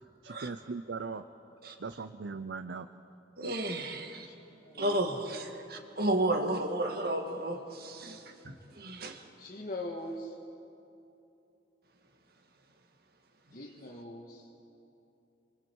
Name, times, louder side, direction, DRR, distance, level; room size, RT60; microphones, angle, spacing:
voice 1, 0.2-1.2 1.8-2.9, right 4 dB, 80° right, 10 dB, 0.6 m, -39 dB
voice 2, 3.4-4.3 4.8-9.2, right 1 dB, 55° right, 4 dB, 1.9 m, -33 dB
voice 3, 4.6-5.0 9.4-10.4 13.5-14.5, left 1 dB, 50° left, -4 dB, 1.8 m, -41 dB
28.5 x 25.5 x 4.7 m, 2.8 s
head